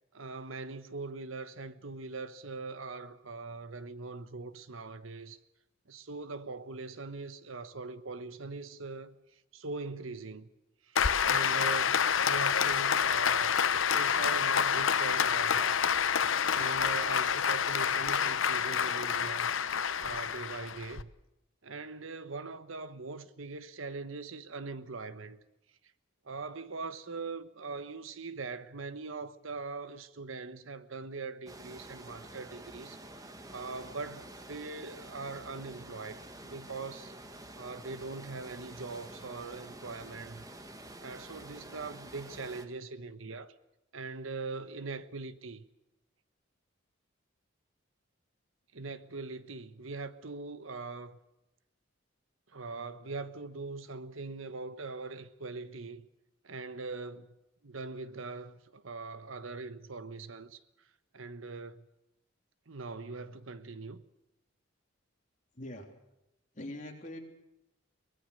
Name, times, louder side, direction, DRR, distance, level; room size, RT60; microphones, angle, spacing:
voice 1, 0.1-5.4 5.9-10.5 10.8-15.8 16.5-19.5 20.0-21.1 21.6-25.4 26.2-37.1 37.6-40.4 41.0-43.5 43.9-45.6 48.7-51.2 52.5-56.1 56.4-57.4 57.6-60.6 61.1-61.9 62.7-64.0, right 3 dB, 80° right, 1.2 m, -42 dB
Applause, 11.0-21.0, left 7 dB, 75° left, 0.8 m, -28 dB
amb pulodolobo, 31.5-42.7, right 1 dB, 15° right, 1.5 m, -48 dB
voice 2, 65.6-65.9 66.6-67.2, left 1 dB, 40° left, 3.5 m, -42 dB
23.5 x 20.0 x 6.6 m
head